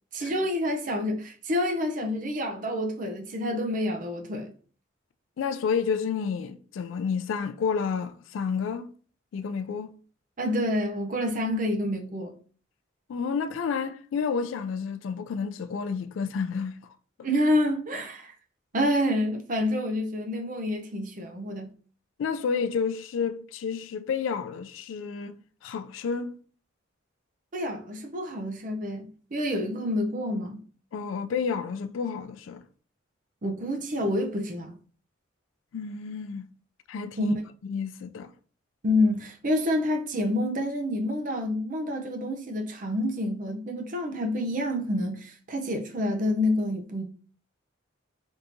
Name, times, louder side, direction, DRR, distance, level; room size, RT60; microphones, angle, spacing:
voice 1, 0.1-4.5 10.4-12.4 17.2-18.3 18.7-21.7 27.5-30.6 33.4-34.7 37.2-37.4 38.8-47.0, left 1 dB, 40° right, 0.5 m, -28 dB
voice 2, 5.4-8.9 9.3-9.9 13.1-16.8 22.2-26.4 30.9-32.6 35.7-36.5 36.9-37.3 37.7-38.3, left 6 dB, 85° left, 0.3 m, -30 dB
3.5 x 2.8 x 2.6 m
head